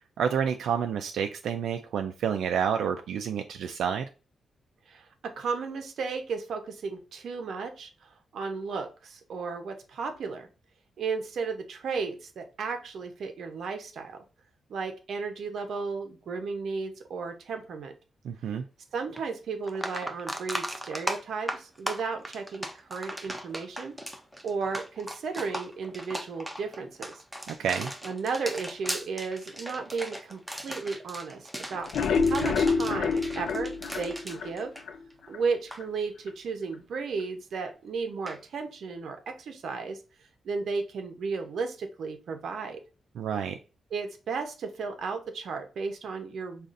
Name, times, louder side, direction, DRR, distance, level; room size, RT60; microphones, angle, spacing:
voice 1, 0.2-4.1 18.2-18.6 27.5-27.9 43.2-43.6, right 7 dB, 90° right, 5 dB, 0.3 m, -29 dB
voice 2, 4.9-10.5 11.0-14.2 14.7-17.9 18.9-23.9 24.4-27.2 28.0-31.9 32.2-34.7 35.3-40.0 40.4-42.8 43.9-46.7, right 4 dB, 60° right, 5 dB, 0.7 m, -34 dB
sound 1, 19.2-19.3 19.6-35.3 35.5-35.8 38.3-38.4, equal, ahead, 0.4 m, -37 dB
sound 2, 31.7-35.0 35.3-35.4 35.8-35.9 36.3-36.4, left 5 dB, 80° left, 0.4 m, -27 dB
5.2 x 2.4 x 2.5 m, 0.33 s
wide cardioid pair, 155°, 0 cm